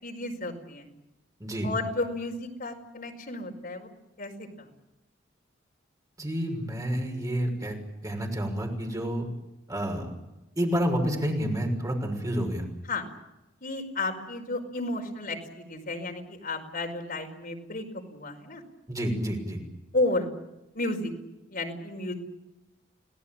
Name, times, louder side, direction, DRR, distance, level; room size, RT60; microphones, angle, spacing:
voice 1, 0.0-0.9 1.6-3.9 4.2-4.7 12.9-13.0 13.6-17.8 18.1-18.6 19.9-20.3 20.7-21.1 21.5-22.1, left 2 dB, 50° left, 3 dB, 5.1 m, -32 dB
voice 2, 1.4-1.7 6.2-7.8 8.0-9.3 9.7-10.1 10.6-12.7 18.9-19.6, equal, 20° right, 2 dB, 6.3 m, -29 dB
28.5 x 18.0 x 8.9 m, 0.96 s
head